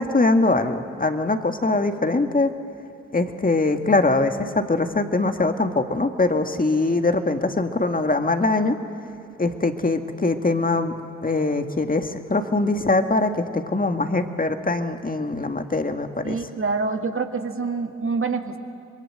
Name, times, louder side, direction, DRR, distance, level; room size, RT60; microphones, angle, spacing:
voice 1, 0.0-2.5 3.1-8.8 9.4-10.9 11.2-16.4, left 2 dB, 25° left, 6 dB, 2.0 m, -22 dB
voice 2, 16.2-18.6, right 4 dB, 40° right, 6 dB, 2.0 m, -26 dB
26.0 x 22.0 x 7.9 m, 2.4 s
hypercardioid pair, 40°, 32 cm